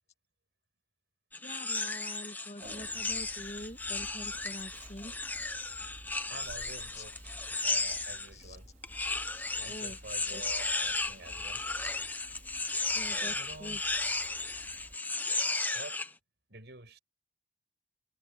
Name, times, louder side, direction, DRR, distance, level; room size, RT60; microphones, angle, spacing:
sound 1, 1.3-8.3 8.8-16.1, left 3 dB, 10° left, 0.8 m, -34 dB
voice 1, 1.4-5.1 7.0-7.1 8.3-8.6 9.7-10.5 11.8-11.9 12.9-13.8, left 1 dB, 35° left, 2.3 m, -45 dB
Conversation, 2.6-15.0, equal, 45° right, 4.8 m, -53 dB
voice 2, 6.3-7.3 7.6-8.7 9.6-11.6 12.9-13.8 15.7-16.0 16.5-17.0, right 2 dB, 65° right, 5.3 m, -48 dB
head